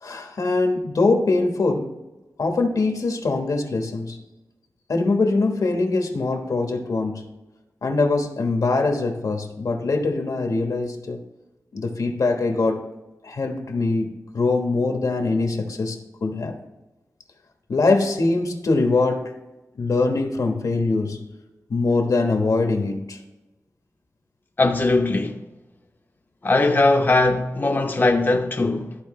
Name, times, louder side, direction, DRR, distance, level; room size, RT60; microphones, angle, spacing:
voice 1, 0.0-1.9 2.4-4.2 4.9-7.2 7.8-11.2 11.7-12.9 13.2-16.5 17.7-19.3 19.8-21.2 21.7-23.2, left 3 dB, 80° left, 1.2 m, -22 dB
voice 2, 24.6-25.4 26.4-29.0, left 2 dB, 35° left, 0.7 m, -20 dB
13.5 x 4.5 x 3.1 m
wide cardioid pair, 90°, 6 cm